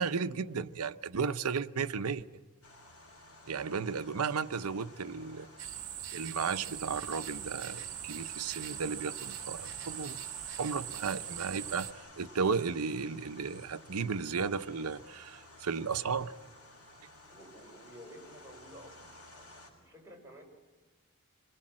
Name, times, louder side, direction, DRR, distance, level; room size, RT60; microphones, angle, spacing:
voice 1, 0.0-2.2 3.5-5.5 6.1-10.2 10.6-16.3, right 5 dB, 85° right, 0.7 m, -34 dB
sound 1, 2.6-19.7, left 2 dB, 80° left, 6.5 m, -53 dB
sound 2, 5.6-11.9, right 11 dB, 60° right, 2.0 m, -41 dB
voice 2, 17.3-19.0 19.3-20.4, equal, 15° right, 5.2 m, -52 dB
26.5 x 20.0 x 7.5 m
head